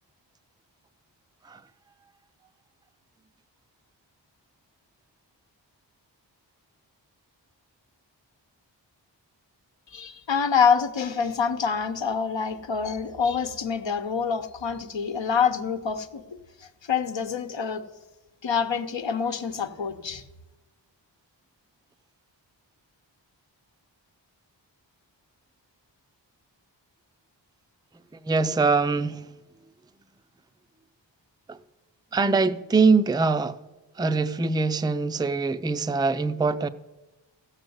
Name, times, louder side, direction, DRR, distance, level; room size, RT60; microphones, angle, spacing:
voice 1, 9.9-16.2 16.6-17.8 18.4-20.2, left 6 dB, 75° left, 1.0 m, -26 dB
voice 2, 28.1-29.3 31.5-31.6 32.1-33.6 34.0-36.7, right 4 dB, 10° right, 0.5 m, -23 dB
15.0 x 6.5 x 7.9 m
wide cardioid pair, 55°, 45 cm